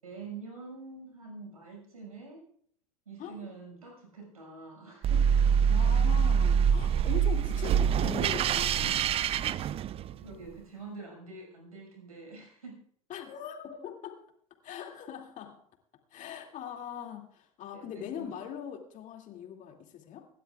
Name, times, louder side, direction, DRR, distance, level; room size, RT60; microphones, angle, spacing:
voice 1, 0.0-2.5 3.1-5.3 7.0-7.1 10.2-12.8 17.7-18.3, right 4 dB, 80° right, 0 dB, 6.2 m, -46 dB
sound 1, 5.0-10.3, right 7 dB, 30° right, 0.5 m, -25 dB
voice 2, 5.7-9.2 13.1-14.3 14.6-15.6 16.1-20.3, left 9 dB, 45° left, 3 dB, 2.5 m, -41 dB
25.5 x 12.5 x 2.4 m, 0.62 s
figure-of-eight pair, 70°, 18 cm